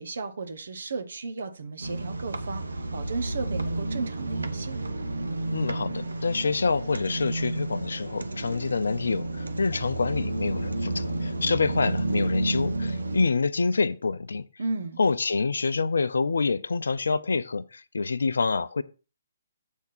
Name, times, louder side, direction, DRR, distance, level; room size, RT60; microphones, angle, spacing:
voice 1, 0.0-4.8 14.6-15.0, right 4 dB, 65° right, 1.3 m, -34 dB
sound 1, 1.8-13.3, right 2 dB, 85° right, 1.0 m, -31 dB
voice 2, 5.5-14.5 15.0-18.8, left 4 dB, 75° left, 0.6 m, -27 dB
8.3 x 3.6 x 5.9 m
figure-of-eight pair, 135°, 0 cm